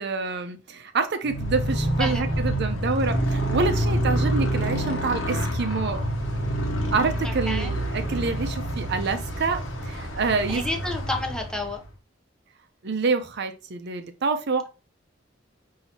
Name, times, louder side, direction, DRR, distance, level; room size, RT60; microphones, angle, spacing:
voice 1, 0.0-6.0 6.9-10.6 12.8-14.7, right 4 dB, 60° right, 0.6 m, -27 dB
Motorcycle, 1.2-11.9, right 1 dB, 80° left, 1.0 m, -27 dB
voice 2, 7.2-7.7 10.5-11.8, left 1 dB, 5° left, 0.7 m, -30 dB
5.5 x 2.8 x 2.8 m
head